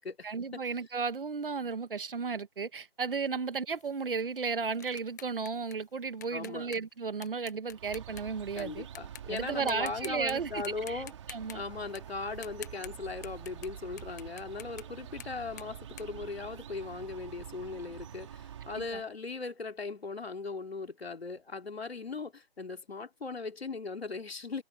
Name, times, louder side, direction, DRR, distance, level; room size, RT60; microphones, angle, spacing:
voice 1, 0.2-8.9 9.3-11.0 11.3-11.6 18.8-19.0, right 5 dB, 60° right, 1.8 m, -34 dB
sound 1, 3.7-8.6 9.0-9.4 9.7-10.3 10.6-13.7 14.0-17.0, left 10 dB, 15° left, 1.2 m, -49 dB
voice 2, 6.3-6.7 8.6-11.1 11.5-24.6, left 4 dB, 75° left, 3.0 m, -39 dB
sound 2, 7.7-19.1, right 9 dB, 30° right, 4.5 m, -47 dB
figure-of-eight pair, 165°, 31 cm